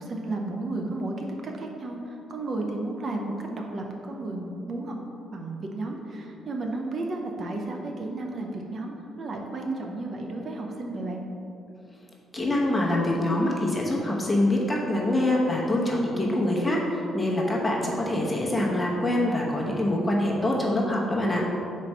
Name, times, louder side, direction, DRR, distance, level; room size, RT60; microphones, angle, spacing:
voice 1, 0.0-2.0 2.3-5.0 5.3-11.2, right 2 dB, 50° right, 1 dB, 0.7 m, -33 dB
voice 2, 12.3-16.8 17.1-21.4, left 1 dB, 15° left, -3 dB, 1.0 m, -25 dB
4.6 x 4.2 x 5.4 m, 2.8 s
cardioid pair, 90°, 0 cm